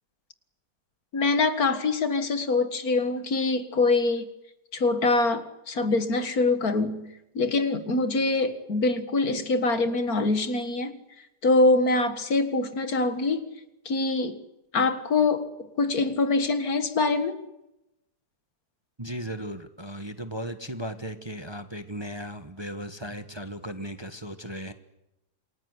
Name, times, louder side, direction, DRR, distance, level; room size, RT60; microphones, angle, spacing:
voice 1, 1.1-4.3 4.7-7.1 7.4-10.9 11.4-13.4 13.9-14.4 14.7-15.5 15.8-17.4, left 3 dB, 65° left, 2.3 m, -24 dB
voice 2, 19.0-24.7, equal, 20° right, 1.3 m, -36 dB
28.0 x 20.0 x 9.7 m
omnidirectional pair, 1.7 m